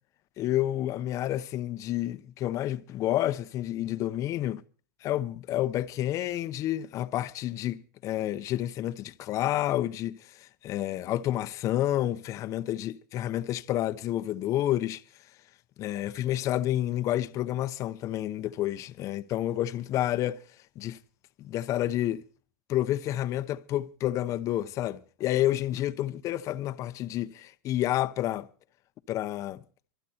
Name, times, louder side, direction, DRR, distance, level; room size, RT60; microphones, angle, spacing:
voice 1, 0.4-4.6 5.0-15.0 15.8-20.4 20.8-21.0 21.4-22.2 22.7-28.5 29.1-29.6, left 13 dB, 30° left, 0.8 m, -29 dB
25.0 x 9.1 x 4.3 m
supercardioid pair, 150°, 11 cm